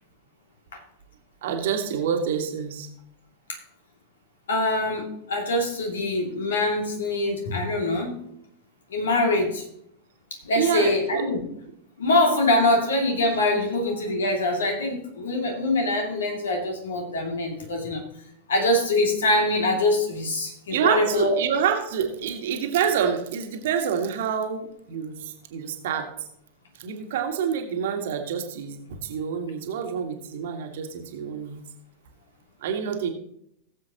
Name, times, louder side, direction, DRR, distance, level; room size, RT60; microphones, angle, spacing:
voice 1, 1.4-2.9 10.5-11.2 20.7-26.1 26.8-31.6 32.6-33.1, right 7 dB, 55° right, 4 dB, 1.7 m, -27 dB
voice 2, 4.5-8.2 8.9-9.6 10.4-11.4 12.0-18.0 18.5-21.3, left 2 dB, 65° left, 2 dB, 2.5 m, -24 dB
18.5 x 7.5 x 3.0 m, 0.74 s
figure-of-eight pair, 90°, 0 cm